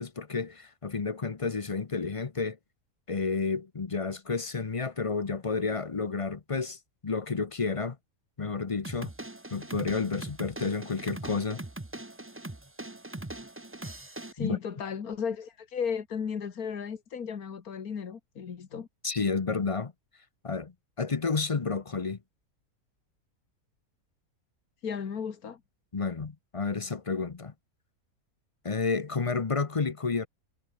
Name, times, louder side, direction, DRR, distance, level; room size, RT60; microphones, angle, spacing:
voice 1, 0.0-2.6 3.1-8.0 8.4-9.1 9.5-11.6 14.4-14.6 19.0-19.9 20.4-22.2 25.9-27.5 28.6-30.3, left 4 dB, 30° left, 0.6 m, -31 dB
sound 1, 8.8-14.3, right 1 dB, 10° right, 1.0 m, -41 dB
voice 2, 14.3-18.9 24.8-25.6, left 6 dB, 85° left, 2.1 m, -35 dB
omnidirectional pair, 1.5 m